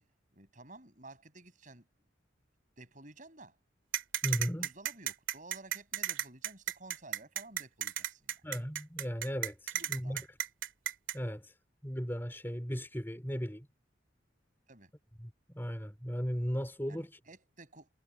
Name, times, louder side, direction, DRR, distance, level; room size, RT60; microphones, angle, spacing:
voice 1, 0.0-1.9 2.8-3.6 4.4-8.4 9.7-10.2 14.7-14.9 16.9-17.9, right 2 dB, 40° right, 6.7 m, -53 dB
sound 1, 3.9-11.1, right 12 dB, 85° right, 2.5 m, -34 dB
voice 2, 4.2-4.7 8.4-10.2 11.1-11.5 11.8-13.7 15.5-17.1, equal, 10° left, 3.9 m, -36 dB
head